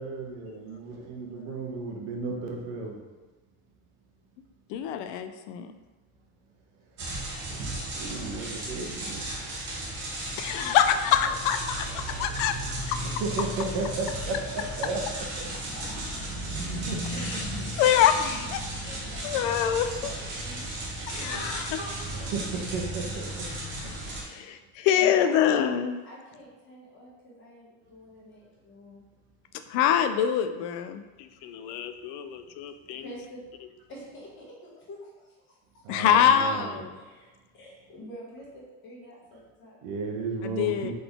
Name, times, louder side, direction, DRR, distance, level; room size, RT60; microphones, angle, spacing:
voice 1, 0.0-3.0 7.0-7.1 7.5-7.6 7.9-9.3 13.0-15.0 15.4-15.5 16.6-17.7 22.1-23.5 23.8-24.2 35.8-36.9 39.8-40.9, right 3 dB, 80° right, 1 dB, 1.0 m, -34 dB
voice 2, 4.7-5.7 10.4-12.5 17.2-17.4 17.8-18.6 19.2-19.9 21.1-21.8 24.3-26.0 29.7-33.0 35.9-36.9 40.4-40.9, left 9 dB, 70° left, 9 dB, 0.5 m, -25 dB
sound 1, 7.0-24.2, right 1 dB, 30° right, 0.9 m, -34 dB
voice 3, 11.6-12.4 14.7-15.0 15.4-16.4 18.8-19.7 20.0-20.7 21.3-21.4 22.2-22.3 24.9-25.4 26.0-29.0 33.0-33.4 33.9-35.8 36.9-37.3 37.5-39.8, equal, 35° left, -5 dB, 1.2 m, -48 dB
3.9 x 3.8 x 3.5 m, 1.3 s
cardioid pair, 180°, 36 cm